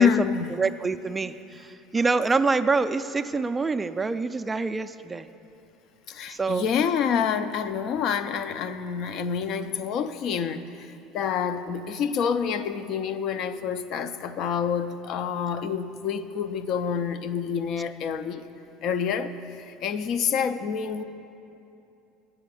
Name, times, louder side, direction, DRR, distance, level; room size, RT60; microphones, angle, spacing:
voice 1, 0.0-0.5 6.1-18.5 18.8-21.0, left 7 dB, 55° left, 12 dB, 0.5 m, -27 dB
voice 2, 0.6-5.3 6.3-6.7, right 4 dB, 15° right, 10 dB, 0.3 m, -26 dB
9.4 x 6.9 x 8.3 m, 2.8 s
supercardioid pair, 110°, 0 cm